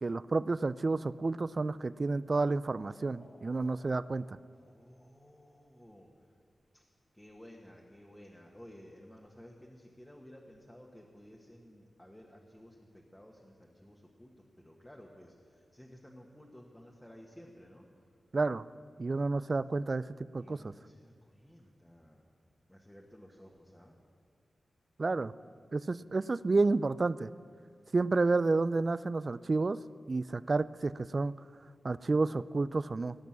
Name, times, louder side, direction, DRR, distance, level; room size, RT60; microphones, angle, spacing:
voice 1, 0.0-4.4 18.3-18.6 19.0-20.1 20.3-20.7 25.0-25.3 25.7-27.3 27.9-29.8 30.1-31.3 31.8-33.2, right 3 dB, 45° right, 17 dB, 0.3 m, -30 dB
sound 1, 1.8-5.8, left 1 dB, 50° left, 3.2 m, -64 dB
voice 2, 4.6-6.3 6.7-6.9 7.1-17.9 20.4-22.3 22.7-24.0, equal, 10° left, -1 dB, 1.5 m, -55 dB
17.5 x 6.0 x 7.4 m, 2.3 s
cardioid pair, 55°, 0 cm